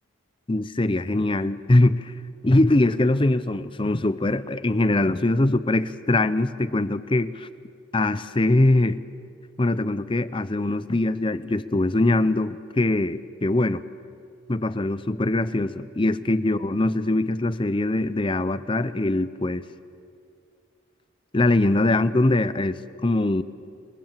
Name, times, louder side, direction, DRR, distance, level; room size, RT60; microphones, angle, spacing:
voice 1, 0.5-2.1 2.4-7.5 7.9-9.0 9.6-13.8 14.5-19.6 21.3-23.4, left 2 dB, 25° left, 14 dB, 0.6 m, -22 dB
29.0 x 19.5 x 7.5 m, 2.4 s
head